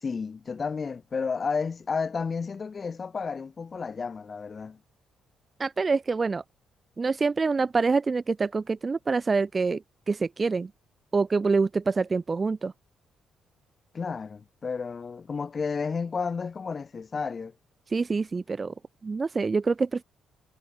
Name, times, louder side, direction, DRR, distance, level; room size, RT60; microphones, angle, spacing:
voice 1, 0.0-4.8 13.9-17.5, left 5 dB, 25° left, 2.5 m, -32 dB
voice 2, 5.6-6.4 7.0-9.8 10.1-10.7 11.1-12.7 17.9-18.7 19.0-20.0, right 4 dB, 20° right, 0.5 m, -26 dB
cardioid pair, 180°, 0 cm